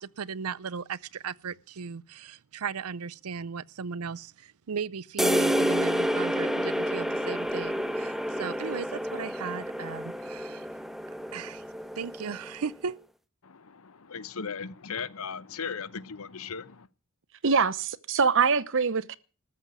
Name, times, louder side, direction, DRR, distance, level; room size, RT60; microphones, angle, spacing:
voice 1, 0.0-10.7 11.3-11.7 11.9-13.0, right 6 dB, 80° right, 0.6 m, -36 dB
sound 1, 5.2-12.7, equal, ahead, 0.8 m, -29 dB
voice 2, 13.4-16.9, left 5 dB, 70° left, 0.9 m, -37 dB
voice 3, 17.4-19.1, right 5 dB, 60° right, 0.9 m, -24 dB
13.5 x 7.3 x 9.4 m
head